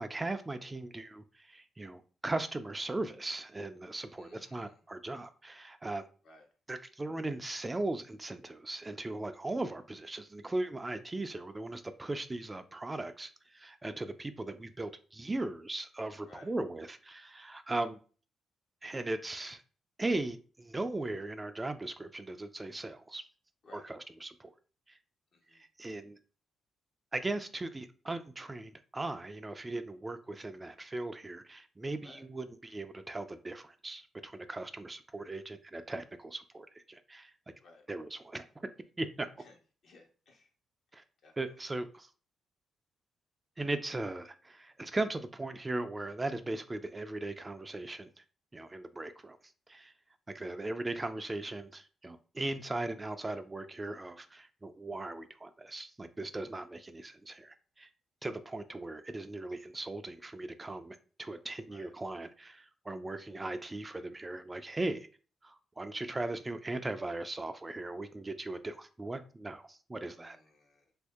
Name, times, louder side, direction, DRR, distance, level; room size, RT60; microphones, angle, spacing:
voice 1, 0.0-6.0 6.7-18.0 18.8-19.6 20.0-23.2 23.7-24.5 24.9-25.0 25.5-26.2 27.1-37.3 37.9-38.7 39.0-39.3 40.9-41.0 41.4-42.1 43.6-48.1 48.5-49.4 49.7-49.9 50.3-57.9 58.2-65.1 65.4-70.4, right 2 dB, 25° right, 0.4 m, -38 dB
voice 2, 4.2-4.8 6.2-6.4 16.2-16.5 23.6-23.9 25.3-25.6 32.0-32.2 37.6-37.8 39.4-39.6 39.8-40.5 41.2-41.3 61.7-61.9 70.1-70.9, left 2 dB, 65° left, 1.0 m, -58 dB
2.8 x 2.6 x 3.5 m
supercardioid pair, 55°, 0 cm